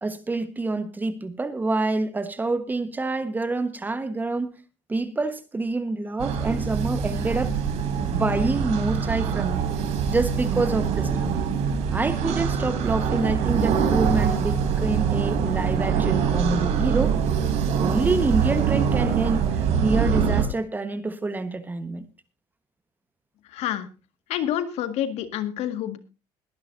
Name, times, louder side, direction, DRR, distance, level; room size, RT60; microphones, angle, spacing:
voice 1, 0.0-4.5 4.9-7.6 8.1-9.7 10.1-11.4 11.9-17.2 17.8-22.1, right 2 dB, 15° right, 1.3 m, -27 dB
sound 1, 6.2-20.4, right 7 dB, 70° right, 3.5 m, -24 dB
voice 2, 23.5-23.9 24.3-26.0, left 11 dB, 70° left, 1.9 m, -28 dB
21.5 x 11.0 x 2.7 m
cardioid pair, 130°, 11 cm